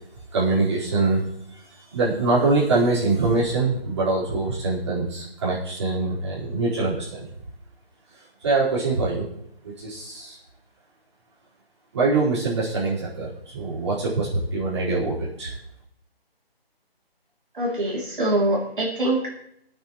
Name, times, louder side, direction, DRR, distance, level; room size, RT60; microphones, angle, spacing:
voice 1, 0.3-1.2 1.5-7.3 8.4-9.3 9.6-10.4 11.9-15.6, right 3 dB, 30° right, -9 dB, 4.7 m, -24 dB
voice 2, 17.5-19.3, right 1 dB, 55° right, -4 dB, 3.2 m, -24 dB
24.5 x 9.1 x 3.2 m, 0.74 s
figure-of-eight pair, 170°, 30 cm